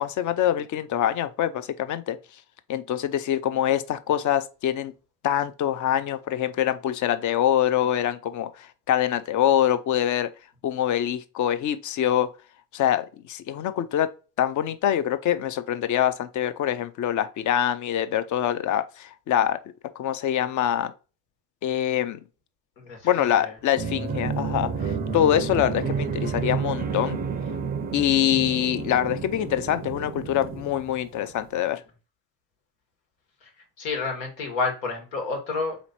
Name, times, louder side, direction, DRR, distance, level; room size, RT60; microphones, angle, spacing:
voice 1, 0.0-2.2 2.7-4.9 5.2-10.3 10.6-12.3 12.7-14.1 14.4-19.6 20.0-20.9 21.6-22.2 23.0-27.2 27.9-31.8, left 11 dB, 40° left, 0.6 m, -24 dB
voice 2, 22.8-23.5 33.4-33.5 33.8-35.8, left 4 dB, 80° left, 1.7 m, -30 dB
sound 1, 23.7-31.3, right 5 dB, 20° right, 0.5 m, -30 dB
4.1 x 3.0 x 4.2 m
hypercardioid pair, 75°, 50 cm